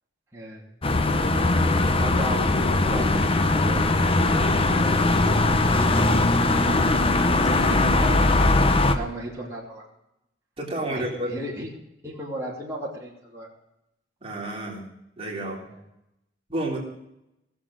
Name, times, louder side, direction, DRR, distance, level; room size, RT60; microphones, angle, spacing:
voice 1, 0.3-0.7 1.1-1.3 2.0-2.5 2.8-4.0 4.7-6.2 7.3-8.2 8.9-9.8 10.9-11.0 11.3-11.7 12.0-13.5 15.7-15.8, right 1 dB, 15° right, -7 dB, 2.7 m, -35 dB
sound 1, 0.8-9.0, left 2 dB, 30° left, 0.9 m, -20 dB
voice 2, 10.6-11.4 14.2-14.8 15.2-15.6 16.5-16.8, right 1 dB, 30° right, -1 dB, 3.2 m, -30 dB
18.5 x 7.2 x 6.4 m, 0.85 s
head